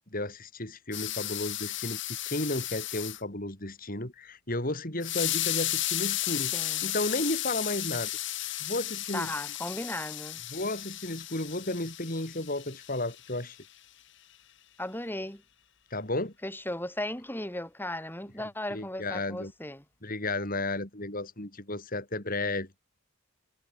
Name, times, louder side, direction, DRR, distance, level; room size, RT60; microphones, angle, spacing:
voice 1, 0.1-8.1 8.6-9.3 10.5-13.6 15.9-16.3 18.7-19.5 20.0-22.8, left 2 dB, 40° left, 4.4 m, -33 dB
sound 1, 0.9-3.2 5.0-13.4, left 14 dB, 60° left, 6.6 m, -34 dB
voice 2, 6.5-6.9 9.1-10.4 14.8-15.4 16.4-19.8, left 1 dB, 10° left, 4.2 m, -36 dB
head